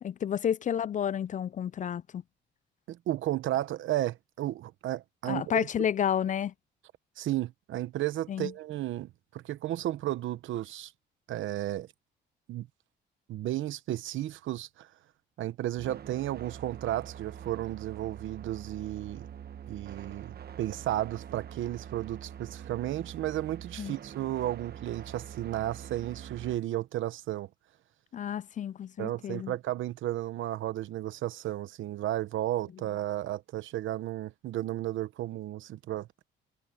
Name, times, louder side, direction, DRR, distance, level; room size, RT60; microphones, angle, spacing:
voice 1, 0.0-2.2 5.3-6.5 8.3-8.5 23.8-24.0 28.1-29.5, left 9 dB, 40° left, 0.4 m, -31 dB
voice 2, 2.9-5.7 7.2-10.9 11.3-11.9 12.5-12.7 13.3-14.9 15.4-19.3 19.7-27.5 29.0-36.1, right 14 dB, 80° right, 1.0 m, -33 dB
sound 1, 15.8-26.6, right 9 dB, 50° right, 1.1 m, -45 dB
cardioid pair, 90°, 20 cm